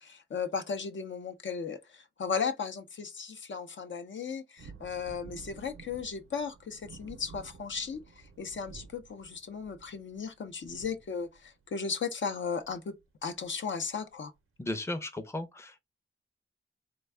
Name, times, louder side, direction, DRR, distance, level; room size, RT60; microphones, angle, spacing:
voice 1, 0.0-8.0 8.4-12.9 13.2-14.3, left 5 dB, 65° left, 0.6 m, -36 dB
sound 1, 4.6-11.7 12.6-12.7 13.0-13.3 13.9-14.0, right 5 dB, 90° right, 0.6 m, -52 dB
voice 2, 14.6-15.8, left 1 dB, 15° left, 0.5 m, -35 dB
3.4 x 2.2 x 3.2 m
cardioid pair, 60°, 21 cm